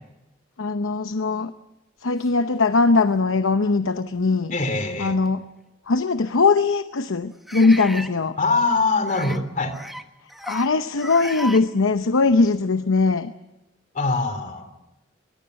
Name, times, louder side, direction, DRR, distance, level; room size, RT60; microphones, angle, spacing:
voice 1, 0.6-1.5 2.0-4.5 5.0-5.4 5.9-8.3 10.5-13.3, left 3 dB, 80° left, 10 dB, 0.8 m, -20 dB
sound 1, 2.7-2.8 3.5-3.6 5.3-5.4 7.5-8.1 9.0-9.4 9.7-10.0 10.3-10.7 11.0-11.6, equal, ahead, 1.2 m, -34 dB
voice 2, 4.5-5.2 8.4-9.8 13.9-14.7, left 3 dB, 40° left, 8 dB, 3.0 m, -23 dB
23.0 x 21.5 x 6.5 m, 1.0 s
head